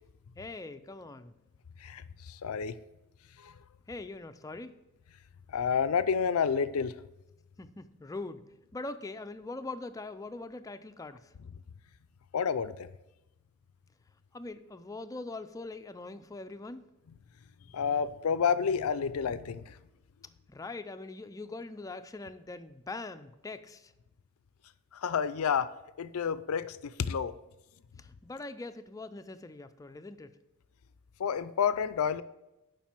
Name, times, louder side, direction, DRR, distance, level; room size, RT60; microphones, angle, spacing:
voice 1, 0.4-1.4 3.9-4.8 7.6-8.4 8.7-11.3 14.3-16.8 20.5-23.9 28.0-30.4, left 2 dB, 15° left, 0.4 m, -42 dB
voice 2, 1.8-2.8 3.4-3.5 5.5-6.9 12.3-12.9 17.7-19.8 24.9-25.7 26.0-27.4 31.2-32.2, left 6 dB, 85° left, 0.4 m, -29 dB
7.3 x 5.3 x 5.9 m
head